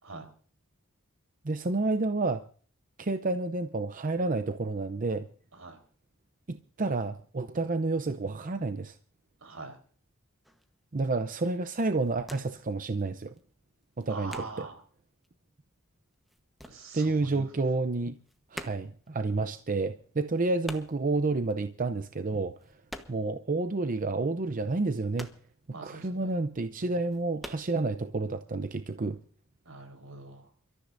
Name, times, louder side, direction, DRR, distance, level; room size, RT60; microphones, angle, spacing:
voice 1, 1.4-2.4 3.0-5.3 6.5-9.0 10.9-13.3 14.0-14.7 16.9-18.1 18.5-22.5 23.1-25.3 25.8-29.2, right 3 dB, 40° right, 0.7 m, -30 dB
voice 2, 9.4-9.8 14.1-14.8 16.7-17.4 25.7-26.3 29.7-30.5, right 3 dB, 85° right, 4.1 m, -43 dB
sound 1, 10.4-10.7 11.2-11.5 11.8-12.7 13.0-14.9 15.2-17.5 17.7-23.4 23.7-23.8 24.2-26.1 26.5-26.6 27.0-27.7, equal, ahead, 1.1 m, -46 dB
29.0 x 13.5 x 2.6 m
head